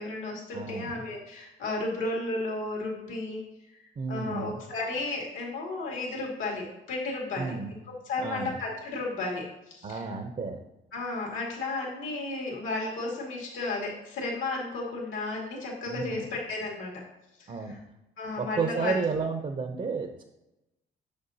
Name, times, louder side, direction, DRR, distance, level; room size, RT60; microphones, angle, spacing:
voice 1, 0.0-3.4 4.1-7.5 8.1-10.1 10.9-17.0 17.4-17.8 18.2-19.0, left 2 dB, 85° left, -3 dB, 2.2 m, -33 dB
voice 2, 0.5-1.0 4.0-4.6 7.4-7.7 8.2-8.6 9.8-10.6 15.9-16.3 17.5-17.7 18.4-20.2, right 4 dB, 40° right, 5 dB, 0.7 m, -32 dB
6.8 x 6.7 x 2.8 m, 0.93 s
cardioid pair, 90°, 20 cm